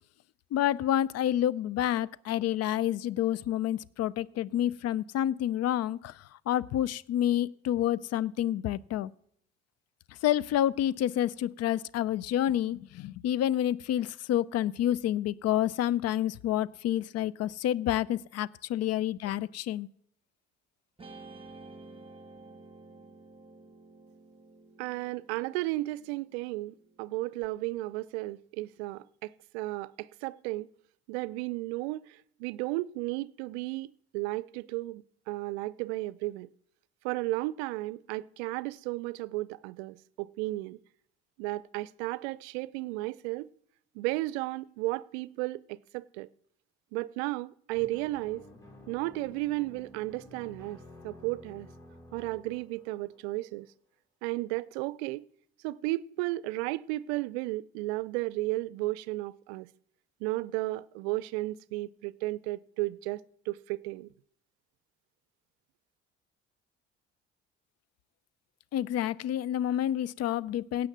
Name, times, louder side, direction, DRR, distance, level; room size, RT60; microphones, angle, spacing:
voice 1, 0.5-9.1 10.2-19.9 68.7-70.9, left 11 dB, 50° left, 0.5 m, -29 dB
Guitar, 21.0-27.4, right 3 dB, 15° right, 1.5 m, -52 dB
voice 2, 24.8-30.7 31.1-36.5 37.0-40.8 41.4-43.5 43.9-46.3 46.9-48.5 48.9-51.7 52.1-53.7 54.2-55.3 55.6-59.7 60.2-64.1, right 19 dB, 80° right, 0.5 m, -34 dB
sound 1, 47.7-53.5, left 1 dB, 10° left, 4.1 m, -52 dB
17.0 x 5.7 x 7.5 m
hypercardioid pair, 60°, 32 cm